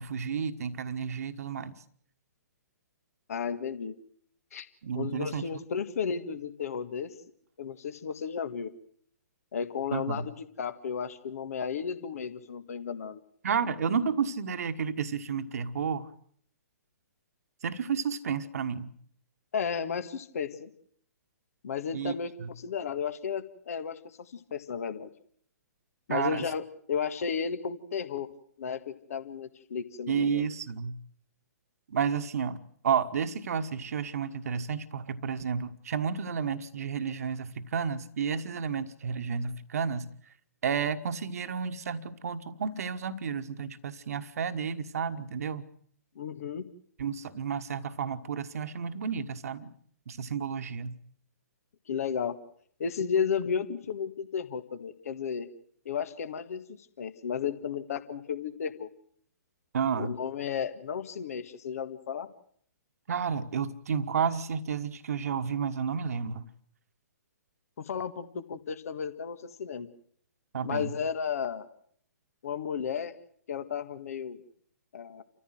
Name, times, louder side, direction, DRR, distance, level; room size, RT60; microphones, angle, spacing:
voice 1, 0.0-1.8 4.8-5.5 9.9-10.3 13.4-16.1 17.6-18.9 21.9-22.1 22.4-22.5 26.1-26.4 30.1-31.0 31.9-40.1 40.6-45.6 47.0-49.7 50.1-51.0 59.7-60.1 63.1-66.5 70.5-70.9, right 6 dB, 55° right, 1.4 m, -31 dB
voice 2, 3.3-3.9 4.5-4.7 4.9-7.1 7.6-8.7 9.5-13.2 19.5-20.7 21.6-25.1 26.1-28.3 28.6-30.5 46.1-46.7 51.9-52.4 52.8-55.5 55.8-56.6 57.0-58.9 59.9-62.3 67.8-69.9 70.6-71.7 72.4-73.1 73.5-74.4 74.9-75.2, left 7 dB, 55° left, 1.7 m, -33 dB
29.0 x 14.5 x 7.9 m
figure-of-eight pair, 125°, 10 cm